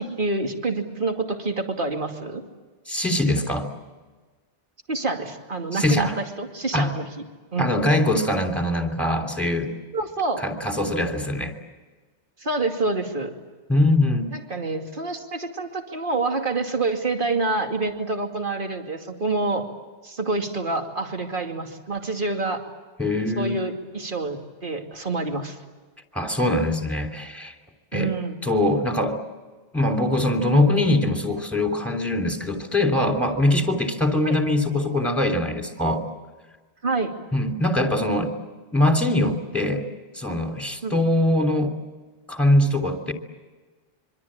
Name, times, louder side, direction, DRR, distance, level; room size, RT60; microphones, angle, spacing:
voice 1, 0.0-2.4 4.9-7.1 7.5-7.7 9.9-10.4 12.4-13.3 14.3-19.7 20.0-22.6 23.4-25.6 27.9-28.4 34.2-34.4 36.8-37.1 40.8-40.9, right 3 dB, 45° right, 3 dB, 2.7 m, -27 dB
voice 2, 2.9-3.7 5.7-6.1 6.7-6.9 7.6-9.7 10.4-11.5 13.7-14.3 23.0-23.6 26.1-27.5 27.9-28.1 28.4-29.2 29.7-36.0 37.3-38.3 38.7-39.9 40.1-41.7 42.3-43.1, left 1 dB, ahead, 5 dB, 3.1 m, -22 dB
26.0 x 24.5 x 8.8 m, 1.3 s
omnidirectional pair, 1.2 m